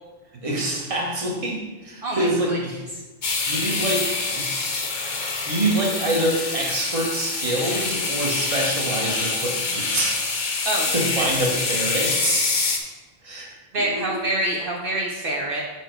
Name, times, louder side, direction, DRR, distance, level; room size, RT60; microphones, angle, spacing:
voice 1, 0.3-2.8 3.5-4.7 5.1-10.2 10.9-12.5 13.2-13.5, right 1 dB, 35° right, -1 dB, 1.2 m, -26 dB
voice 2, 2.0-2.6 10.6-11.3 13.7-15.6, right 1 dB, 60° right, -2 dB, 1.0 m, -26 dB
sound 1, 3.2-12.8, left 4 dB, 50° left, 0.9 m, -26 dB
6.4 x 4.8 x 4.4 m, 1.2 s
omnidirectional pair, 1.0 m